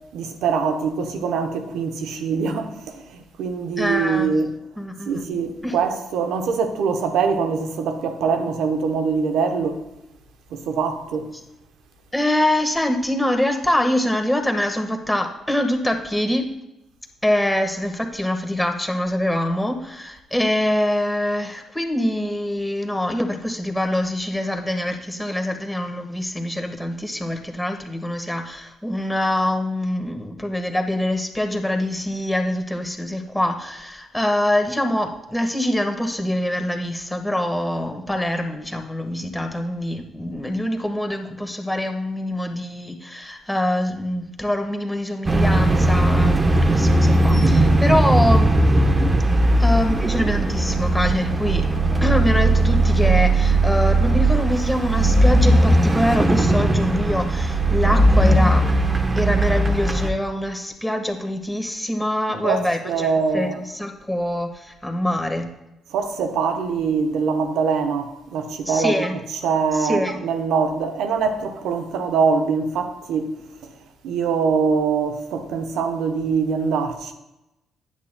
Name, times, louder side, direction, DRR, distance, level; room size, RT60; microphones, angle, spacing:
voice 1, 0.1-4.5 5.1-9.8 10.5-11.3 62.4-63.6 65.9-69.1 69.4-73.4 73.6-73.7 74.0-77.1, right 5 dB, 70° right, 1.0 m, -23 dB
voice 2, 3.8-4.3 4.8-5.2 5.6-5.7 12.1-16.5 17.2-48.5 49.6-51.7 52.0-58.7 59.1-65.5 68.6-69.1 69.7-70.2, left 1 dB, 5° left, 1.5 m, -24 dB
sound 1, 45.3-60.1, right 1 dB, 30° right, 1.0 m, -18 dB
10.0 x 8.3 x 2.3 m
hypercardioid pair, 45°, 0 cm